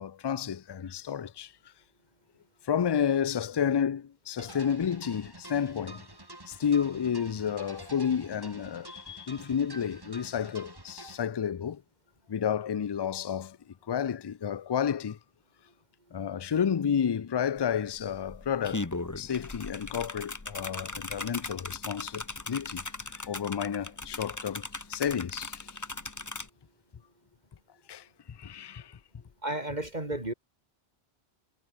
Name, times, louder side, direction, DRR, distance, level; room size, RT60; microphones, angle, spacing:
voice 1, 0.0-1.5 2.7-6.0 6.5-11.8 12.3-13.6 13.9-15.2 16.1-18.9 19.2-22.8 23.3-24.6 24.9-25.7 27.9-28.0 28.4-28.9, left 8 dB, 45° left, 0.3 m, -30 dB
sound 1, 4.4-11.2, right 1 dB, 20° right, 2.5 m, -48 dB
sound 2, 17.6-17.7 18.0-26.5, left 2 dB, 20° left, 0.9 m, -38 dB
voice 2, 29.4-30.3, right 1 dB, 45° right, 3.3 m, -32 dB
omnidirectional pair, 1.1 m